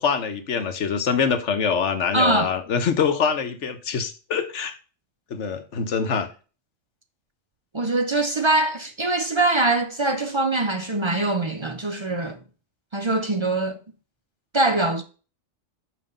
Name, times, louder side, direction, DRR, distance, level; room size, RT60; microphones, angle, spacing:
voice 1, 0.0-4.7 5.3-6.3, left 6 dB, 65° left, 1.2 m, -24 dB
voice 2, 2.1-2.5 7.7-12.4 12.9-13.8 14.5-15.0, right 2 dB, 35° right, 0.4 m, -23 dB
5.9 x 5.2 x 5.2 m
omnidirectional pair, 1.3 m